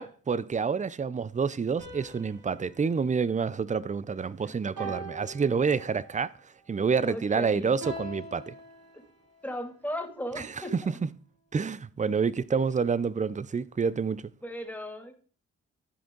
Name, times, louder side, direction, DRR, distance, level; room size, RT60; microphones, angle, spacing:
voice 1, 0.0-6.3 6.7-8.5 10.4-10.5 10.7-10.9 11.5-14.3, right 5 dB, 25° right, 0.6 m, -28 dB
sound 1, 1.8-4.2 4.8-6.2 7.8-9.5, right 2 dB, 85° right, 2.9 m, -44 dB
voice 2, 7.0-7.7 8.9-9.0 9.4-10.9 12.5-12.6 14.4-15.2, equal, 5° left, 2.6 m, -37 dB
14.0 x 5.0 x 3.9 m
supercardioid pair, 50°, 31 cm